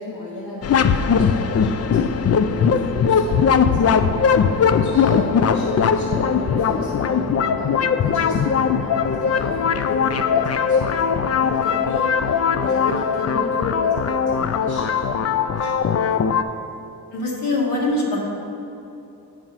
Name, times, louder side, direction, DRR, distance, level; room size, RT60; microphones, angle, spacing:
voice 1, 0.0-16.2, left 2 dB, 70° left, -5 dB, 1.2 m, -33 dB
sound 1, 0.6-16.4, left 6 dB, 40° left, 0.4 m, -20 dB
voice 2, 17.1-18.2, left 2 dB, 85° left, -4 dB, 1.8 m, -23 dB
8.8 x 4.7 x 5.7 m, 2.7 s
cardioid pair, 70°, 39 cm